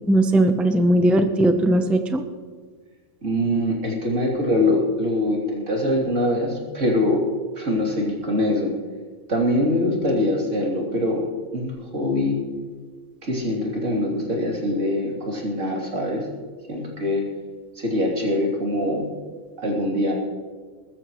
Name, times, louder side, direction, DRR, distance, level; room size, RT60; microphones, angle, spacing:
voice 1, 0.1-2.2, right 1 dB, ahead, 7 dB, 0.6 m, -18 dB
voice 2, 3.2-7.2 7.6-8.7 9.3-11.2 11.5-12.4 13.2-16.3 16.7-17.2 17.8-19.1 19.6-20.1, left 1 dB, 85° right, -2 dB, 3.5 m, -23 dB
21.5 x 13.0 x 3.2 m, 1.5 s
omnidirectional pair, 1.3 m